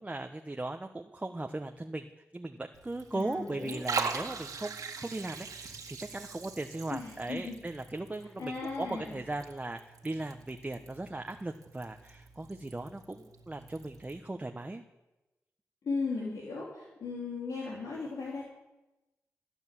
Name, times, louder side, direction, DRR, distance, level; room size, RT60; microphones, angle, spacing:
voice 1, 0.0-2.0 2.3-4.7 5.0-14.8, right 2 dB, 25° right, 5 dB, 1.1 m, -38 dB
Liquid, 2.7-14.2, right 5 dB, 75° right, 2.0 m, -42 dB
voice 2, 3.1-3.8 6.9-7.6 8.4-9.2 15.8-18.4, left 4 dB, 85° left, -4 dB, 3.3 m, -36 dB
16.5 x 9.2 x 7.5 m, 1.0 s
cardioid pair, 50°, 6 cm